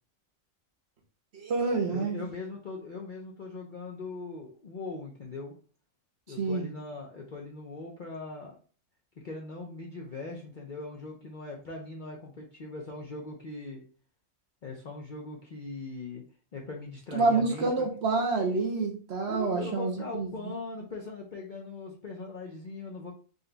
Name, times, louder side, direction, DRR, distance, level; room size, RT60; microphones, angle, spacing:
voice 1, 1.3-2.2 6.4-6.7 17.1-20.5, right 3 dB, 55° right, 2 dB, 0.9 m, -28 dB
voice 2, 1.9-5.6 6.3-8.6 9.2-13.8 14.6-16.2 16.5-17.7 18.3-18.4 19.3-23.1, left 3 dB, 50° left, -1 dB, 0.6 m, -40 dB
3.9 x 2.3 x 3.8 m, 0.40 s
omnidirectional pair, 1.5 m